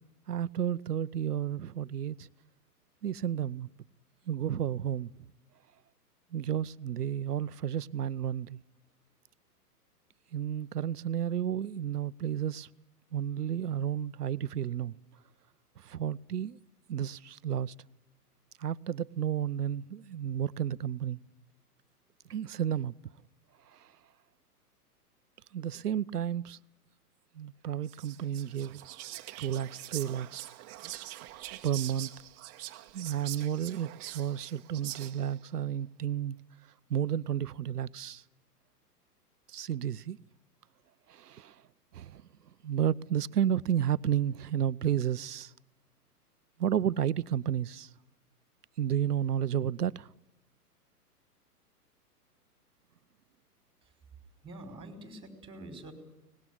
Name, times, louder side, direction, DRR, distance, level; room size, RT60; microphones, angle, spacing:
voice 1, 0.3-2.3 3.0-3.7 4.3-5.1 6.3-8.6 10.3-12.7 13.1-14.9 15.8-16.6 16.9-17.7 18.6-21.2 22.3-22.9 25.5-26.6 27.4-28.8 29.4-30.4 31.6-32.1 32.9-36.4 36.9-38.2 39.5-40.2 41.2-41.5 41.9-42.2 42.6-45.5 46.6-47.9 48.8-50.1, right 10 dB, 75° right, 0.9 m, -32 dB
Whispering, 27.8-35.4, right 15 dB, 30° right, 1.5 m, -44 dB
voice 2, 54.4-55.9, right 1 dB, 10° right, 5.3 m, -46 dB
24.0 x 20.0 x 9.7 m
figure-of-eight pair, 115°, 47 cm